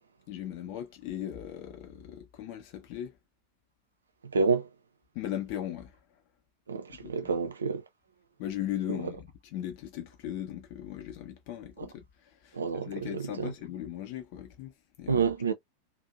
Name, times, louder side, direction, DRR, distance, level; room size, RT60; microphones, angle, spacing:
voice 1, 0.3-3.2 5.1-6.0 6.9-7.1 8.4-12.0 12.4-14.7 15.0-15.5, left 11 dB, 45° left, 0.7 m, -38 dB
voice 2, 4.3-4.7 6.7-7.8 11.8-11.9 12.5-13.5 15.1-15.5, right 5 dB, 70° right, 0.4 m, -29 dB
2.5 x 2.0 x 2.5 m
figure-of-eight pair, 90°, 0 cm